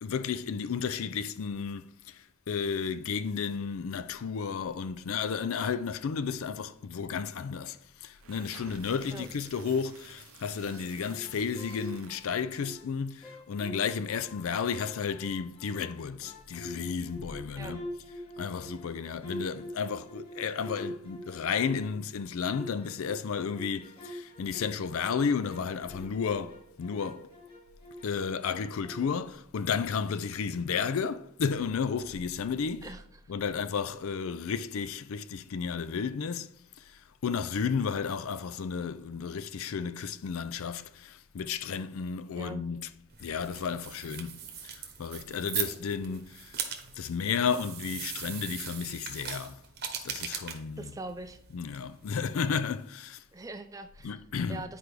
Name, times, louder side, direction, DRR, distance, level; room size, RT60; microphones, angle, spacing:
voice 1, 0.0-17.8 18.4-27.3 28.0-32.9 33.3-42.9 43.2-46.6 47.0-49.6 50.0-50.9 51.5-53.2 54.0-54.6, left 6 dB, 70° left, 0.4 m, -33 dB
sound 1, 8.1-12.5, right 7 dB, 75° right, 0.6 m, -52 dB
sound 2, 11.0-12.9 13.2-15.9 16.2-22.0 22.5-28.2 28.5-29.3, left 1 dB, 25° left, 1.2 m, -45 dB
sound 3, 43.1-52.3, right 8 dB, 45° right, 0.9 m, -40 dB
voice 2, 50.8-51.4 53.3-54.2 54.5-54.8, right 2 dB, 15° right, 0.4 m, -41 dB
9.9 x 4.6 x 3.3 m
head